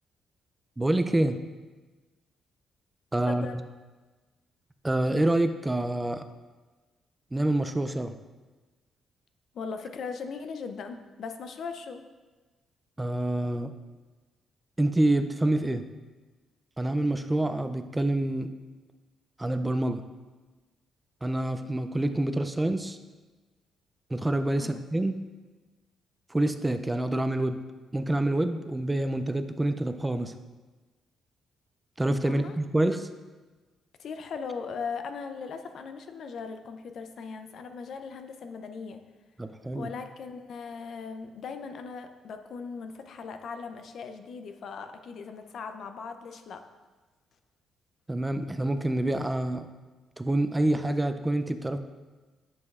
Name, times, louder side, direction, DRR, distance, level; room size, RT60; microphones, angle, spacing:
voice 1, 0.8-1.4 3.1-3.5 4.8-6.2 7.3-8.1 13.0-13.7 14.8-15.8 16.8-18.5 19.4-20.0 21.2-23.0 24.1-25.1 26.3-27.6 27.9-30.3 32.0-33.0 39.4-39.9 48.1-49.7 50.2-51.8, right 1 dB, 15° right, 9 dB, 0.3 m, -27 dB
voice 2, 3.3-3.6 9.5-12.1 24.6-24.8 32.3-32.8 34.0-39.0 39.7-46.7, left 5 dB, 65° left, 7 dB, 0.5 m, -39 dB
9.4 x 5.3 x 2.4 m, 1.3 s
cardioid pair, 90°, 0 cm